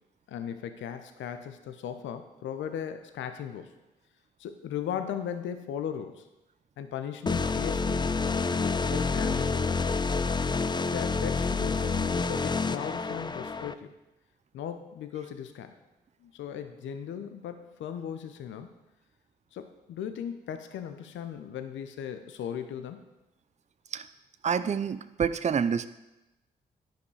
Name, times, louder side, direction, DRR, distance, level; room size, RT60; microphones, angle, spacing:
voice 1, 0.3-3.7 4.4-6.3 6.8-8.1 8.5-10.0 10.9-13.9 14.5-15.7 16.2-18.7 19.5-23.0, left 9 dB, 70° left, 8 dB, 0.7 m, -37 dB
sound 1, 7.3-13.7, left 4 dB, 20° left, 0.5 m, -28 dB
voice 2, 24.4-25.9, right 7 dB, 35° right, 13 dB, 0.5 m, -28 dB
10.5 x 5.3 x 4.8 m, 0.99 s
hypercardioid pair, 40°, 20 cm